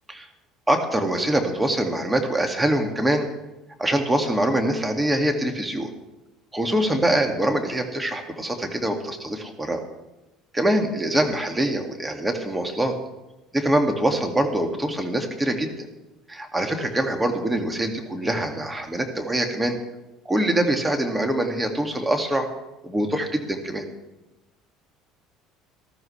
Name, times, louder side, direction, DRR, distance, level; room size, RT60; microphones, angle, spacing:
voice 1, 0.7-3.3 3.8-5.9 6.5-9.8 10.5-13.0 13.5-15.9 16.3-19.8 20.3-22.5 22.8-23.8, right 1 dB, 10° right, 4 dB, 2.2 m, -24 dB
19.5 x 13.5 x 3.3 m, 1.0 s
supercardioid pair, 85°, 0 cm